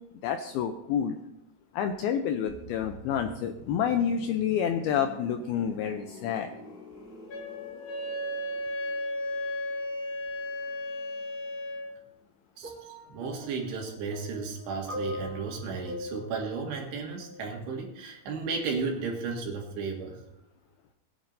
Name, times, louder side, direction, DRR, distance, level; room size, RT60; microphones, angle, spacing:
voice 1, 0.2-1.2 1.7-6.5, left 8 dB, 90° left, 6 dB, 2.2 m, -29 dB
sound 1, 2.5-12.1 12.4-12.6, left 1 dB, 30° left, 2.0 m, -49 dB
Wind instrument woodwind instrument, 7.3-12.0, left 1 dB, 55° left, 2.6 m, -34 dB
sound 2, 12.6-17.7 18.6-18.8, left 1 dB, 35° right, 3.8 m, -42 dB
voice 2, 13.1-20.2, right 4 dB, 70° right, 0 dB, 3.9 m, -34 dB
20.5 x 10.0 x 2.7 m, 0.87 s
omnidirectional pair, 5.1 m